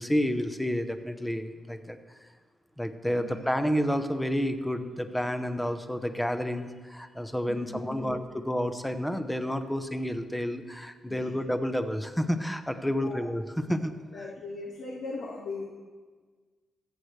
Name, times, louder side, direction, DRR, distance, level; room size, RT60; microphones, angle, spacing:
voice 1, 0.0-2.0 2.8-14.2, equal, 5° left, 8 dB, 0.7 m, -30 dB
voice 2, 7.5-8.1 11.1-11.3 12.8-13.3 14.1-15.6, left 3 dB, 90° left, -3 dB, 1.6 m, -39 dB
23.5 x 7.9 x 3.2 m, 1.5 s
wide cardioid pair, 150°, 0 cm